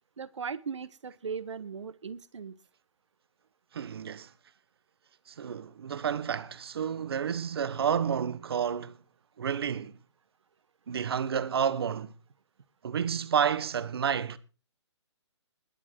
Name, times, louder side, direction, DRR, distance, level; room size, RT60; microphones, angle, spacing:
voice 1, 0.2-2.5, right 6 dB, 75° right, 1.6 m, -38 dB
voice 2, 3.7-4.3 5.3-9.0 9.4-10.0 10.9-12.1 12.8-14.4, right 7 dB, 55° right, 1.4 m, -30 dB
20.5 x 9.1 x 4.7 m
hypercardioid pair, 165°, 15 cm